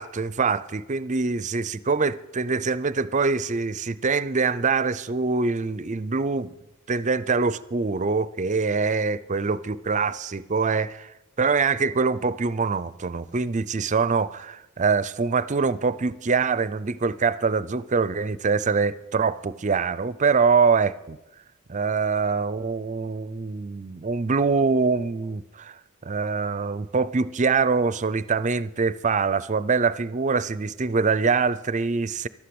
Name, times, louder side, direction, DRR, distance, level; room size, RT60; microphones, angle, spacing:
voice 1, 0.0-6.5 6.9-11.1 11.4-21.2 21.7-32.3, right 4 dB, 35° right, 0.5 m, -24 dB
13.5 x 12.0 x 7.8 m
head